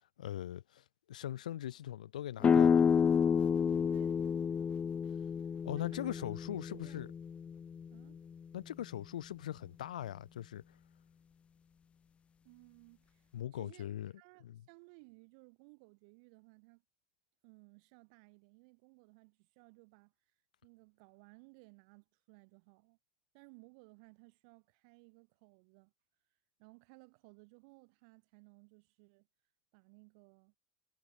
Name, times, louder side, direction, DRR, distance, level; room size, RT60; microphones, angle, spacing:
voice 1, 0.0-2.9 5.6-7.1 8.5-10.6 13.3-14.1 14.4-14.6, left 11 dB, 80° left, 1.7 m, -41 dB
sound 1, 2.4-8.0, left 7 dB, 30° left, 0.7 m, -30 dB
voice 2, 3.9-4.9 5.4-6.3 6.6-7.0 7.9-8.2 12.4-13.9 14.2-16.8 17.4-20.1 20.6-23.0 23.3-25.9 26.6-29.3 29.7-30.5, right 34 dB, 65° right, 6.5 m, -60 dB
hypercardioid pair, 75°, 4 cm